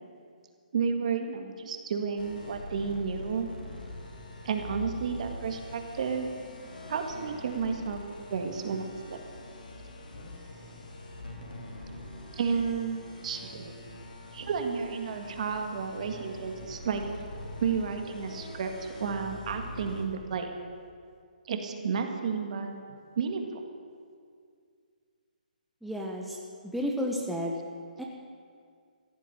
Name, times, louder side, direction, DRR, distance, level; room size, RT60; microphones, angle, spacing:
voice 1, 0.7-3.5 4.4-6.3 6.9-8.0 8.3-9.2 12.3-13.7 14.3-17.0 17.6-20.5 21.5-22.7 23.2-23.6, right 6 dB, 50° right, 5 dB, 1.9 m, -32 dB
sound 1, 2.2-20.0, left 1 dB, 80° left, 3.6 m, -44 dB
voice 2, 25.8-26.4 26.7-27.5 28.0-28.1, equal, ahead, -2 dB, 1.0 m, -31 dB
15.0 x 7.5 x 10.0 m, 2.2 s
hypercardioid pair, 155°, 5 cm